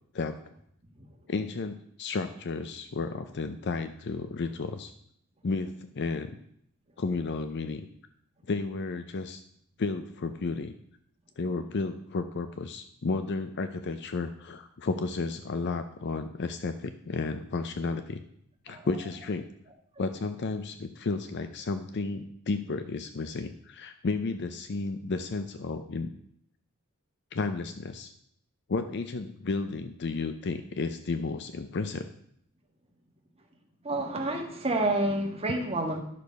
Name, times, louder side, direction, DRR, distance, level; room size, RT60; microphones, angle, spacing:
voice 1, 1.3-4.9 5.4-6.3 7.0-7.9 8.5-9.4 9.8-10.7 11.4-18.2 18.6-19.4 20.0-26.1 27.3-28.1 28.7-32.1, left 3 dB, 55° left, 9 dB, 0.5 m, -32 dB
voice 2, 33.8-36.0, right 2 dB, 30° right, 2 dB, 1.6 m, -29 dB
11.0 x 6.6 x 5.2 m, 0.70 s
head